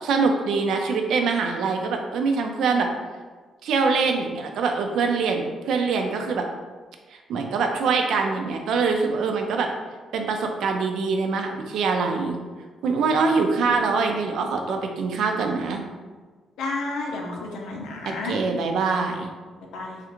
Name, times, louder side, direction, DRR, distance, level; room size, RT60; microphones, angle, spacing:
voice 1, 0.0-2.9 3.6-6.4 7.3-9.7 10.1-12.4 12.8-15.8 18.0-19.3, right 4 dB, 75° right, 4 dB, 0.4 m, -24 dB
voice 2, 16.6-18.4 19.7-20.0, left 3 dB, 85° left, 0 dB, 0.6 m, -31 dB
3.2 x 2.4 x 2.9 m, 1.4 s
cardioid pair, 90°, 0 cm